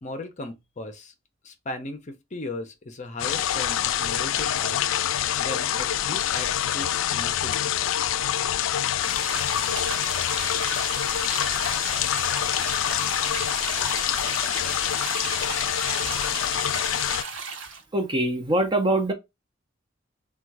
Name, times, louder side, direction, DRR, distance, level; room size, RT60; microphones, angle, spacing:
voice 1, 0.0-1.1 1.4-4.8 5.4-7.7, left 2 dB, 40° left, 0.6 m, -37 dB
sound 1, 3.2-17.2, left 11 dB, 80° left, 0.3 m, -26 dB
sound 2, 9.0-17.8, right 5 dB, 70° right, 0.7 m, -35 dB
voice 2, 17.9-19.1, right 1 dB, 25° right, 0.7 m, -23 dB
3.7 x 2.3 x 4.5 m
head